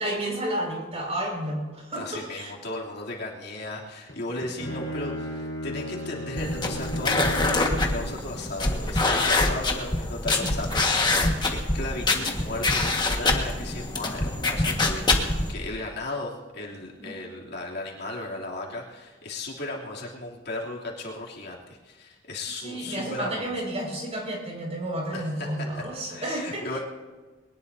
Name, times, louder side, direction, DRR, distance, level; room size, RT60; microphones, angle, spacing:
voice 1, 0.0-2.5 10.3-10.5 10.9-11.0 17.0-17.1 22.6-26.8, right 1 dB, 35° right, -1 dB, 5.7 m, -31 dB
voice 2, 1.9-23.5 25.1-25.5 25.7-25.8 26.1-26.8, left 2 dB, 60° left, -3 dB, 3.0 m, -36 dB
Bowed string instrument, 4.1-8.2, equal, 80° left, 4.1 m, -35 dB
sound 1, 6.4-15.5, left 2 dB, 25° left, 1.6 m, -25 dB
22.0 x 19.5 x 2.8 m, 1.3 s
head